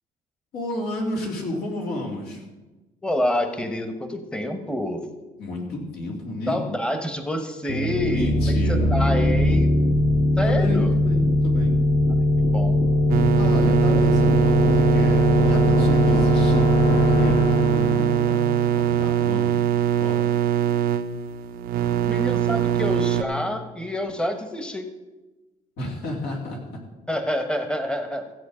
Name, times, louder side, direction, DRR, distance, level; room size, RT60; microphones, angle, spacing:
voice 1, 0.5-2.4 5.4-6.6 8.1-8.9 10.4-11.8 13.3-20.3 25.8-26.8, left 1 dB, 75° left, -1 dB, 3.2 m, -31 dB
voice 2, 3.0-5.1 6.5-9.7 10.4-10.9 12.4-12.8 21.9-24.9 27.1-28.3, left 1 dB, 5° left, 7 dB, 1.1 m, -28 dB
sound 1, 7.7-19.3, left 1 dB, 35° left, 1.3 m, -20 dB
sound 2, 13.1-23.2, right 10 dB, 65° right, 0.7 m, -22 dB
15.0 x 8.1 x 5.1 m, 1.1 s
cardioid pair, 110°, 17 cm